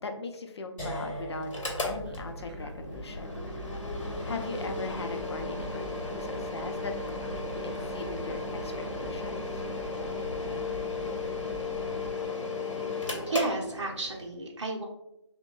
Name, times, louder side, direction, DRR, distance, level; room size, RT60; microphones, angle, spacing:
voice 1, 0.0-1.5 1.8-3.3 4.2-9.4, left 3 dB, 60° left, 5 dB, 0.6 m, -39 dB
sound 1, 0.8-6.7, equal, 10° left, 1.0 m, -43 dB
Mechanical fan, 1.4-14.3, left 3 dB, 90° left, 1.0 m, -35 dB
sound 2, 1.7-12.1, right 1 dB, 10° right, 0.5 m, -43 dB
voice 2, 13.3-14.9, right 3 dB, 65° right, -1 dB, 0.7 m, -32 dB
5.5 x 2.2 x 2.3 m, 0.88 s
figure-of-eight pair, 155°, 16 cm